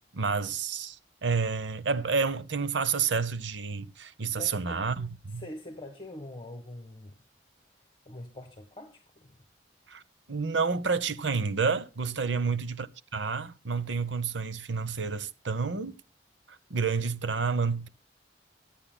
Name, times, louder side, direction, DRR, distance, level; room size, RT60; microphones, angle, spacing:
voice 1, 0.1-5.4 9.9-10.0 10.3-15.9 16.7-17.9, right 5 dB, 90° right, 0.9 m, -29 dB
voice 2, 4.3-4.8 5.3-7.1 8.0-9.4, left 1 dB, 30° left, 1.5 m, -44 dB
24.0 x 8.7 x 2.3 m
head